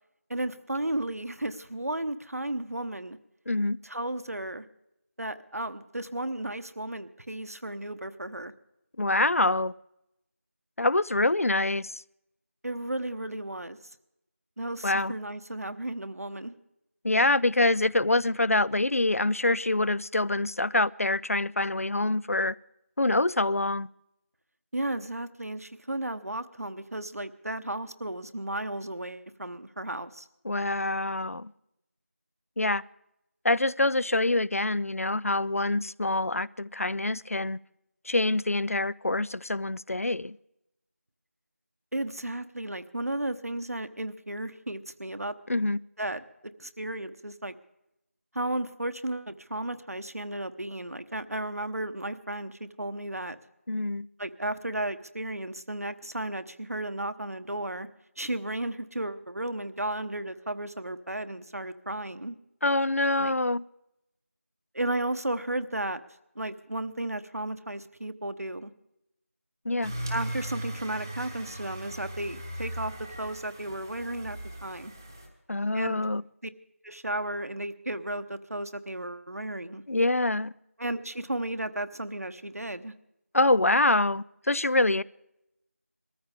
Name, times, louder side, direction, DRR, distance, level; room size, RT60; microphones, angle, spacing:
voice 1, 0.3-3.2 3.8-4.7 5.2-8.5 12.6-13.8 14.6-16.5 24.7-30.3 41.9-45.3 46.0-46.2 46.6-47.5 48.3-53.4 54.2-57.9 58.2-62.4 63.2-63.4 64.7-66.0 66.3-68.7 70.1-74.9 75.7-76.0 76.4-76.5 76.8-79.8 80.8-82.9, right 1 dB, 75° right, 1.0 m, -34 dB
voice 2, 3.5-3.8 9.0-9.7 10.8-12.0 14.8-15.1 17.0-22.5 23.0-23.9 30.4-31.5 32.6-32.8 33.4-37.6 38.1-40.4 45.5-45.8 53.7-54.1 62.6-63.6 69.7-69.9 75.5-76.2 79.9-80.5 83.3-85.0, left 2 dB, 65° left, 0.4 m, -25 dB
sound 1, 69.8-75.3, right 1 dB, 15° right, 1.0 m, -38 dB
22.0 x 14.0 x 3.6 m
figure-of-eight pair, 175°, 8 cm